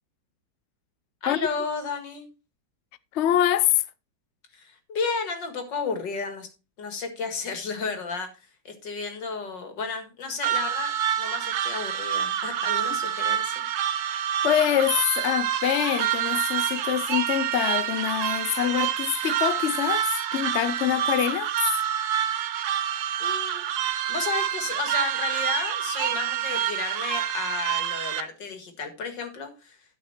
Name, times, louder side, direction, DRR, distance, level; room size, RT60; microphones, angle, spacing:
voice 1, 1.2-2.3 4.5-6.5 6.8-8.3 8.6-13.7 23.2-23.6 24.1-29.8, left 4 dB, 65° left, 2.6 m, -32 dB
voice 2, 3.1-3.8 14.4-21.5, left 12 dB, 85° left, 0.6 m, -25 dB
sound 1, 10.4-28.2, right 10 dB, 65° right, 1.2 m, -27 dB
12.0 x 5.8 x 4.3 m
omnidirectional pair, 2.1 m